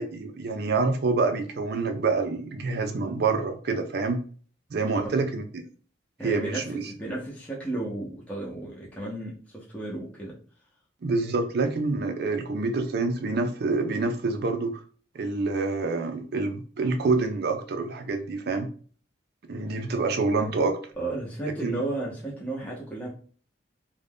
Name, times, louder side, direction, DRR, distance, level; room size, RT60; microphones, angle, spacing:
voice 1, 0.0-4.2 4.7-5.4 6.2-6.9 11.0-14.8 15.1-18.7 19.5-20.8 21.6-21.8, right 3 dB, 55° right, 7 dB, 0.4 m, -27 dB
voice 2, 6.2-10.4 21.0-23.1, right 2 dB, 5° left, -5 dB, 0.6 m, -34 dB
2.5 x 2.2 x 3.4 m, 0.43 s
head